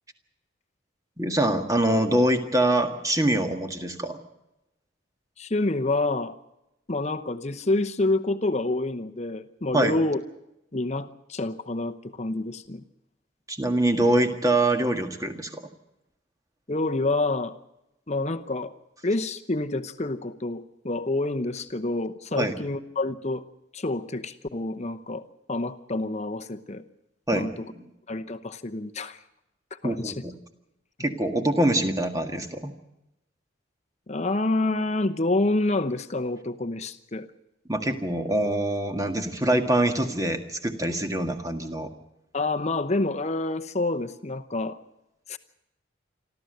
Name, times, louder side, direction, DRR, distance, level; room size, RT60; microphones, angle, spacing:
voice 1, 1.2-4.2 9.7-10.0 13.5-15.6 22.3-22.5 27.3-27.5 29.8-30.3 31.0-32.7 37.7-41.9, right 1 dB, 15° right, 6 dB, 1.7 m, -24 dB
voice 2, 5.4-6.4 6.9-10.2 10.7-12.8 16.7-17.6 18.1-18.7 19.0-23.4 23.7-26.8 27.3-27.7 28.1-29.2 29.7-30.2 34.1-37.3 42.3-44.8 45.3-45.4, left 2 dB, 35° left, 8 dB, 0.9 m, -28 dB
27.5 x 13.0 x 7.9 m, 0.89 s
head